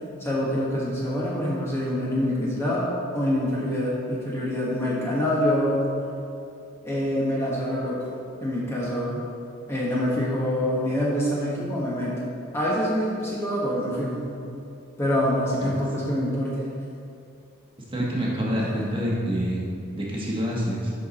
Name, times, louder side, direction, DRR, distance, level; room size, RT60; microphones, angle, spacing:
voice 1, 0.2-2.9 3.1-5.8 6.8-8.1 8.4-9.2 9.7-12.1 12.5-14.3 15.0-16.5 18.6-19.0, equal, 10° left, -7 dB, 1.2 m, -25 dB
voice 2, 17.9-19.7 19.9-20.9, equal, 25° right, -5 dB, 1.4 m, -27 dB
11.0 x 4.6 x 4.2 m, 2.6 s
head